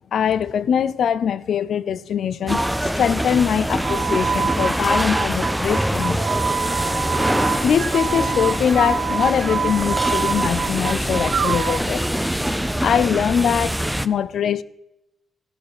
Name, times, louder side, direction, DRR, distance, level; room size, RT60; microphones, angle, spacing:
voice 1, 0.1-6.2 7.6-14.6, left 8 dB, 60° left, 0.4 m, -22 dB
sound 1, 2.5-14.1, equal, ahead, 0.4 m, -24 dB
sound 2, 3.7-11.9, right 7 dB, 60° right, 0.8 m, -26 dB
sound 3, 5.1-12.4, left 3 dB, 30° left, 1.4 m, -37 dB
16.0 x 6.1 x 6.5 m
wide cardioid pair, 170°, 0 cm